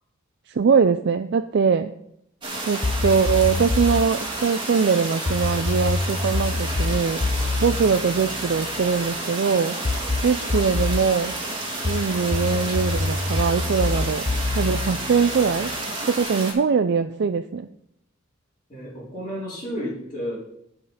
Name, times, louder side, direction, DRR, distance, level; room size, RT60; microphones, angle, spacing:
voice 1, 0.5-1.9 2.7-7.2 7.6-9.8 10.2-11.4 11.8-14.3 14.6-15.7 16.1-17.7, right 5 dB, 60° right, 9 dB, 0.4 m, -22 dB
sound 1, 2.4-16.5, right 2 dB, 25° right, 2.3 m, -31 dB
sound 2, 2.8-4.1 5.3-9.0 9.8-11.1 11.8-15.8, left 3 dB, 45° left, 0.7 m, -26 dB
voice 2, 18.7-20.3, equal, 25° left, -12 dB, 3.6 m, -32 dB
11.5 x 5.1 x 5.6 m, 0.77 s
head